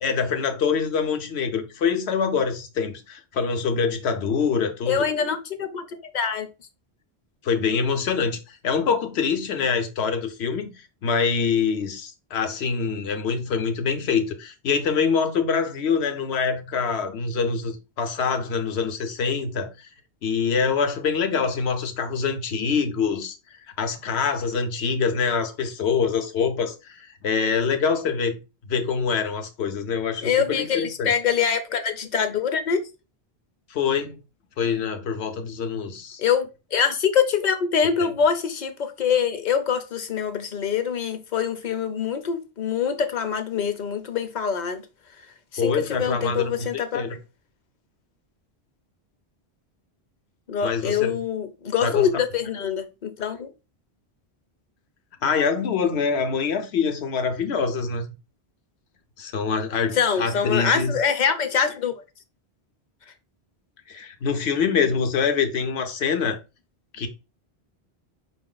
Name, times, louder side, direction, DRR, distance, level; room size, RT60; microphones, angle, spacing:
voice 1, 0.0-5.0 7.4-10.7 11.0-19.9 20.2-23.4 23.8-28.4 28.7-31.1 33.7-34.2 34.6-36.2 38.0-38.1 45.6-47.2 50.6-51.2 51.8-52.1 55.2-58.0 59.2-60.9 63.9-66.4 66.9-67.1, left 5 dB, 80° left, 1.0 m, -25 dB
voice 2, 4.9-6.5 30.2-32.8 36.2-44.8 45.5-47.0 50.5-53.5 59.9-61.9, left 7 dB, 50° left, 0.7 m, -24 dB
5.1 x 2.6 x 3.8 m
omnidirectional pair, 1.1 m